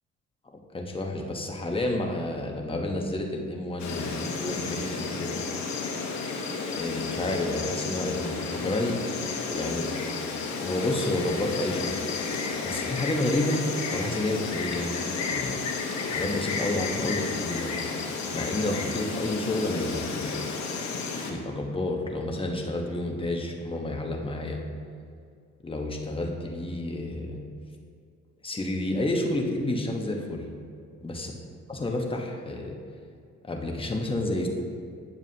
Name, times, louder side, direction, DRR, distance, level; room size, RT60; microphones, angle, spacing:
voice 1, 0.5-5.4 6.7-9.0 9.4-9.9 10.6-11.9 12.6-13.6 13.9-14.9 15.3-15.6 16.1-17.8 18.3-20.4 21.2-24.6 25.6-27.4 28.4-30.4 31.0-31.3 31.7-32.7 33.4-34.5, left 1 dB, 20° left, 1 dB, 1.0 m, -30 dB
Insect, 3.8-21.3, left 4 dB, 65° left, 1.0 m, -32 dB
9.3 x 7.0 x 2.8 m, 2.3 s
cardioid pair, 90°, 30 cm